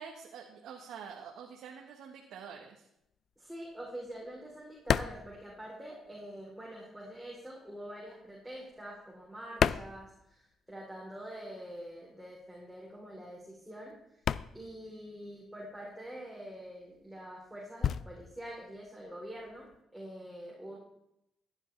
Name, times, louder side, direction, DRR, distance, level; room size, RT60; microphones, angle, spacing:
voice 1, 0.0-2.9, right 6 dB, 80° right, 0 dB, 1.4 m, -47 dB
sound 1, 3.0-6.4 6.7-10.8 11.1-19.8, left 8 dB, 60° left, 0.3 m, -36 dB
voice 2, 3.4-14.2 14.5-20.8, equal, ahead, -5 dB, 3.6 m, -45 dB
14.5 x 9.8 x 3.3 m, 0.80 s
cardioid pair, 90°, 0 cm